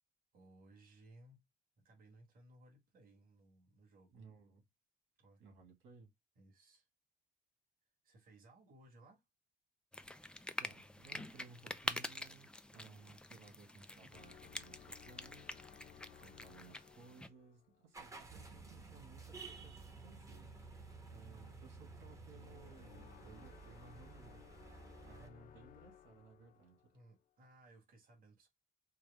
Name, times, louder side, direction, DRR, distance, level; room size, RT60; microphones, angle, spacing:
voice 1, 0.3-1.4 1.8-4.3 5.2-5.4 6.4-6.9 8.0-9.2 26.9-28.5, right 2 dB, 50° right, 1.9 m, -63 dB
voice 2, 4.1-4.7 5.4-6.1 10.5-15.5 16.2-20.5 21.1-24.5 25.0-26.9, right 4 dB, 85° right, 2.1 m, -60 dB
sound 1, 9.9-17.3, left 1 dB, 5° left, 0.3 m, -46 dB
sound 2, 14.1-17.9 22.3-27.2, left 9 dB, 50° left, 0.7 m, -60 dB
sound 3, 17.9-25.3, right 3 dB, 15° right, 1.0 m, -53 dB
4.7 x 2.2 x 3.5 m
cardioid pair, 135°, 19 cm